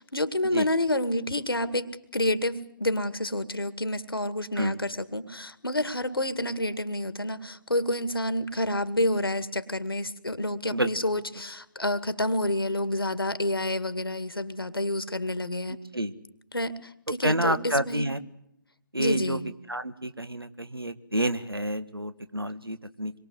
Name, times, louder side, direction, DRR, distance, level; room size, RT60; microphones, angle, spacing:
voice 1, 0.0-15.8 16.5-18.1 19.0-19.4, left 1 dB, 80° left, 11 dB, 2.2 m, -29 dB
voice 2, 17.2-18.2 18.9-19.4 19.7-23.1, right 1 dB, 90° right, 11 dB, 1.8 m, -29 dB
26.5 x 22.5 x 8.0 m, 0.78 s
figure-of-eight pair, 140°, 12 cm